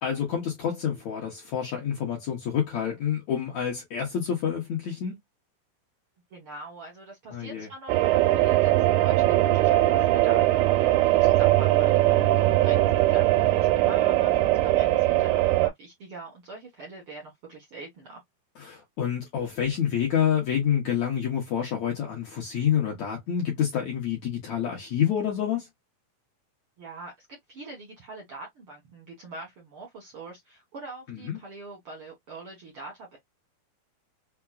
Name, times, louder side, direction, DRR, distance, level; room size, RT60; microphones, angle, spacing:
voice 1, 0.0-5.2 7.3-7.7 12.0-12.3 18.6-25.7 31.1-31.4, left 8 dB, 70° left, 1.8 m, -28 dB
voice 2, 6.3-18.2 26.8-33.2, right 3 dB, 70° right, 1.2 m, -43 dB
sound 1, 7.9-15.7, right 16 dB, 90° right, 2.5 m, -21 dB
5.8 x 2.1 x 2.3 m
omnidirectional pair, 4.3 m